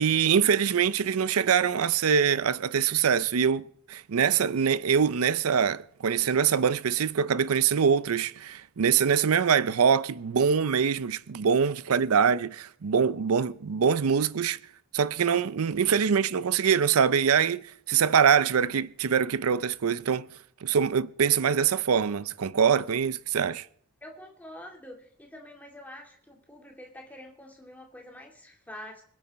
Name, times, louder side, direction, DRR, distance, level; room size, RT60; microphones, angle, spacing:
voice 1, 0.0-14.6 14.9-20.3 20.6-23.7, right 7 dB, 90° right, 0.5 m, -24 dB
voice 2, 24.0-29.0, left 1 dB, 5° left, 2.5 m, -46 dB
26.0 x 9.1 x 4.2 m
head